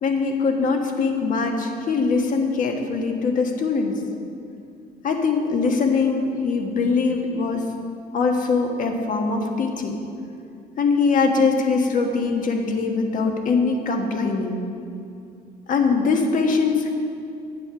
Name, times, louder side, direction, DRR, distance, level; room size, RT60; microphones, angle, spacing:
voice 1, 0.0-4.0 5.0-7.6 8.1-10.0 10.8-14.6 15.7-16.9, left 4 dB, 50° left, 3 dB, 1.4 m, -22 dB
10.0 x 7.6 x 6.0 m, 2.6 s
cardioid pair, 110°, 17 cm